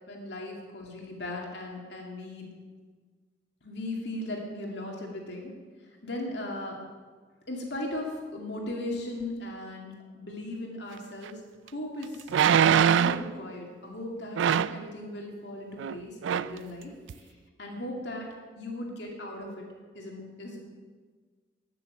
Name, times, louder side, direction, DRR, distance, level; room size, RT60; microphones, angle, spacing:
voice 1, 0.1-2.5 3.6-5.5 6.0-6.8 7.5-11.4 11.7-12.2 12.6-16.9 17.6-18.3 18.6-19.6 19.9-20.6, left 1 dB, 65° left, 0 dB, 2.5 m, -37 dB
sound 1, 11.3-11.4 12.3-13.3 14.4-14.8 15.8-16.0 16.2-16.6 17.1-17.2, right 8 dB, 75° right, 0.3 m, -23 dB
12.5 x 6.9 x 7.3 m, 1.5 s
head